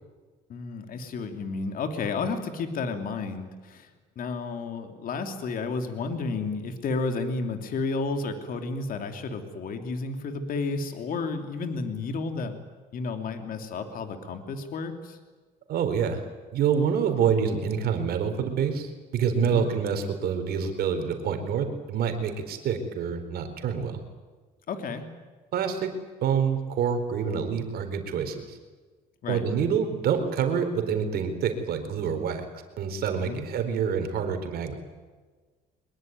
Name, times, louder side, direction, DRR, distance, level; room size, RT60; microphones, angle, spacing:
voice 1, 0.5-3.9 4.2-12.6 12.9-15.2 19.4-19.7 24.7-25.0 29.2-29.4 33.2-33.4, left 4 dB, 55° left, 6 dB, 3.0 m, -32 dB
voice 2, 15.7-16.2 16.5-24.0 25.5-25.9 26.2-28.6 29.3-32.4 32.8-34.8, right 7 dB, 65° right, 7 dB, 4.3 m, -27 dB
23.5 x 22.0 x 9.6 m, 1.4 s
cardioid pair, 110°, 17 cm